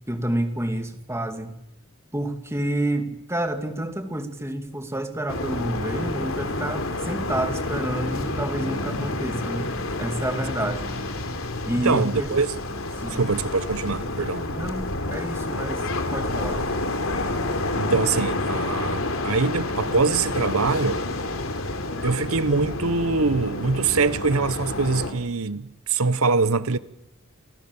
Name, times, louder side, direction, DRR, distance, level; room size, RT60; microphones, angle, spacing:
voice 1, 0.1-1.5 2.1-10.9 11.7-12.3 13.0-13.2 14.5-16.7 18.8-18.9, right 1 dB, 10° right, 2.3 m, -29 dB
sound 1, 5.3-25.1, left 2 dB, 65° left, 3.4 m, -29 dB
voice 2, 11.8-12.5 13.1-14.5 17.8-21.0 22.0-26.8, right 4 dB, 80° right, 1.0 m, -23 dB
28.5 x 28.0 x 7.1 m
head